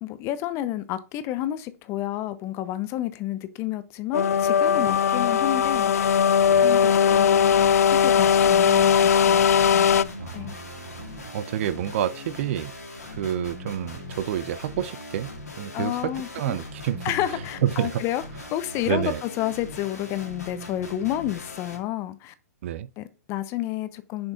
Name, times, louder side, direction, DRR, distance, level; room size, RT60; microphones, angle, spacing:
voice 1, 0.0-5.9 6.5-9.5 10.3-10.6 15.7-16.6 17.0-18.2 18.5-22.3 23.0-24.3, left 13 dB, 30° left, 0.7 m, -30 dB
sound 1, 4.1-10.0, left 7 dB, 70° left, 0.4 m, -19 dB
sound 2, 7.4-21.8, left 2 dB, 90° left, 1.9 m, -40 dB
voice 2, 10.2-12.7 13.1-15.3 15.6-17.0 17.6-18.0 18.9-19.2 22.6-22.9, right 11 dB, 50° right, 0.5 m, -29 dB
7.0 x 5.3 x 2.7 m
hypercardioid pair, 120°, 9 cm